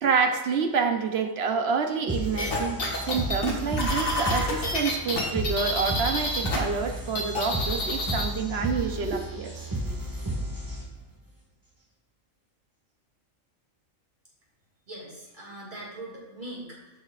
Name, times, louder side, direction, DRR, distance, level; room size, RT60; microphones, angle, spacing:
voice 1, 0.0-9.5 9.9-10.0, right 5 dB, 55° right, 5 dB, 1.0 m, -28 dB
sound 1, 2.1-11.1, right 1 dB, 15° right, 1.8 m, -33 dB
sound 2, 2.4-6.6 6.9-8.3, left 2 dB, 75° left, 1.9 m, -28 dB
voice 2, 14.9-16.9, right 1 dB, 35° right, -5 dB, 2.8 m, -41 dB
13.5 x 5.3 x 2.5 m, 1.1 s
omnidirectional pair, 1.4 m